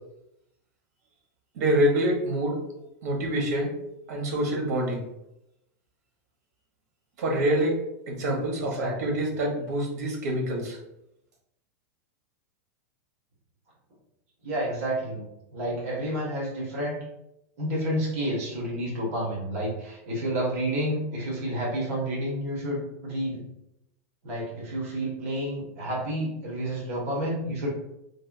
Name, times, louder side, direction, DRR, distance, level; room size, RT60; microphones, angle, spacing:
voice 1, 1.5-2.6 3.0-3.7 4.1-5.0 7.2-7.7 8.1-10.8, right 1 dB, 80° right, 0 dB, 1.0 m, -26 dB
voice 2, 8.5-9.2 14.4-15.3 15.5-17.0 17.6-23.4 24.2-27.7, right 1 dB, 60° right, -3 dB, 1.4 m, -30 dB
3.3 x 2.3 x 2.5 m, 0.83 s
supercardioid pair, 165°, 9 cm